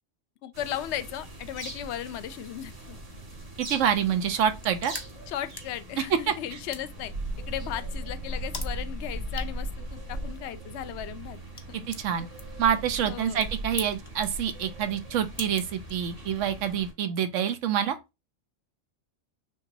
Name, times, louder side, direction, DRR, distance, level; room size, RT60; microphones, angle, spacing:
voice 1, 0.4-3.0 5.3-7.1 7.5-11.4 11.7-11.9 13.0-13.4, left 11 dB, 65° left, 0.8 m, -36 dB
sound 1, 0.5-16.9, right 1 dB, 50° right, 1.7 m, -39 dB
voice 2, 3.6-4.9 6.3-6.4 11.9-12.3 12.6-18.0, right 9 dB, 75° right, 1.0 m, -27 dB
sound 2, 4.4-16.5, left 3 dB, 35° left, 0.4 m, -46 dB
5.9 x 3.1 x 2.6 m
omnidirectional pair, 1.3 m